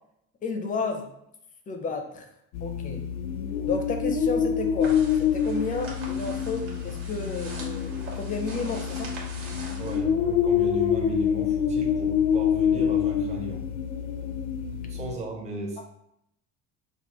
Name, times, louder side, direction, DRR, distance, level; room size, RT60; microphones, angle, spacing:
voice 1, 0.4-1.1 1.7-2.3 2.6-3.1 3.7-9.1, left 4 dB, 25° left, 5 dB, 0.5 m, -32 dB
sound 1, 2.5-15.1, left 8 dB, 75° left, 0.5 m, -26 dB
sound 2, 4.8-10.0, right 2 dB, 40° right, 1.1 m, -43 dB
voice 2, 9.8-13.6 14.9-15.8, right 2 dB, 20° right, 0 dB, 0.6 m, -36 dB
5.4 x 2.3 x 2.9 m, 0.77 s
cardioid pair, 150°, 33 cm